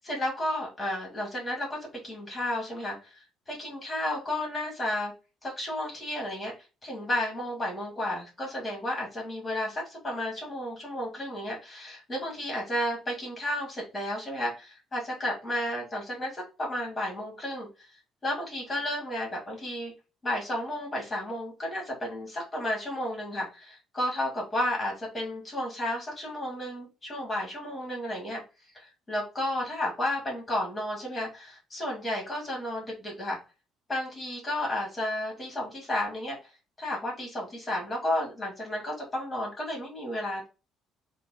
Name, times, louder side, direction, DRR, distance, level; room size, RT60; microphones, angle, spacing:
voice 1, 0.0-5.1 5.4-6.5 6.8-17.9 18.2-19.9 20.2-28.4 28.7-33.4 33.9-36.5 36.8-40.5, left 1 dB, 20° left, -1 dB, 2.1 m, -32 dB
4.0 x 2.3 x 4.1 m, 0.30 s
cardioid pair, 125°, 0 cm